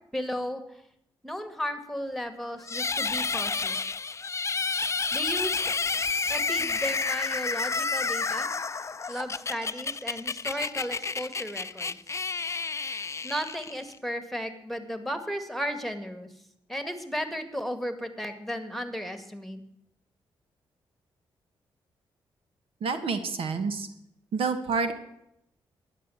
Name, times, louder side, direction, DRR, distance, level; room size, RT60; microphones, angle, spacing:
voice 1, 0.1-0.6 1.2-3.8 5.1-5.7 6.3-8.5 9.1-12.0 13.2-16.3 16.7-19.6, equal, ahead, 9 dB, 2.0 m, -34 dB
sound 1, 2.7-14.0, left 4 dB, 30° left, 0.5 m, -30 dB
voice 2, 22.8-23.9 24.3-24.9, right 4 dB, 70° right, 9 dB, 1.4 m, -28 dB
11.5 x 9.9 x 7.2 m, 0.78 s
supercardioid pair, 55°, 10 cm